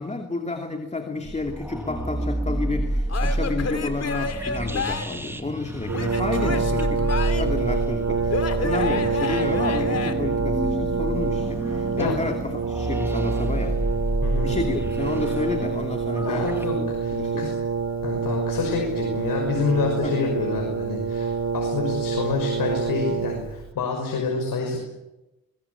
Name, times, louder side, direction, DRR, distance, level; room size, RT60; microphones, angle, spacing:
voice 1, 0.0-13.8 14.4-17.6 20.0-20.2, left 3 dB, 20° left, 4 dB, 2.8 m, -30 dB
sound 1, 1.2-16.7, right 1 dB, 5° right, 2.4 m, -29 dB
Male speech man speaking / Yell / Laughter, 3.1-5.2 5.9-7.6 8.3-10.1, left 4 dB, 45° left, 2.9 m, -30 dB
Brass instrument, 5.9-23.7, right 5 dB, 50° right, 3.0 m, -27 dB
voice 2, 14.2-14.6 16.2-17.5 18.0-24.8, left 4 dB, 70° left, 1 dB, 6.0 m, -27 dB
22.0 x 21.5 x 8.5 m, 0.99 s
cardioid pair, 90°, 35 cm